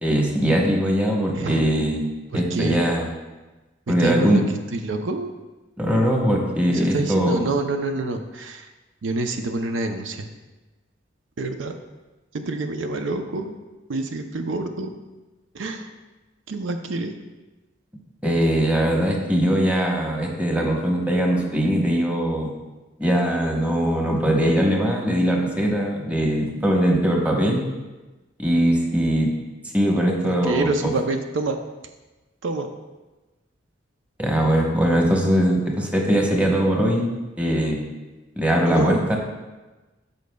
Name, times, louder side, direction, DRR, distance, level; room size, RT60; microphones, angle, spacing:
voice 1, 0.0-3.1 3.9-4.4 5.8-7.5 18.2-22.5 23.0-27.6 28.4-29.3 29.7-30.9 34.2-37.1 37.4-37.9 38.4-39.2, equal, 10° right, -1 dB, 1.0 m, -21 dB
voice 2, 1.3-1.6 2.3-2.8 3.9-5.3 6.7-8.7 9.0-10.3 11.4-11.7 12.3-13.5 13.9-14.9 15.5-15.9 16.5-17.1 29.8-31.6 32.4-32.7 38.7-39.0, right 2 dB, 90° right, 6 dB, 0.6 m, -27 dB
13.5 x 5.2 x 2.3 m, 1.2 s
head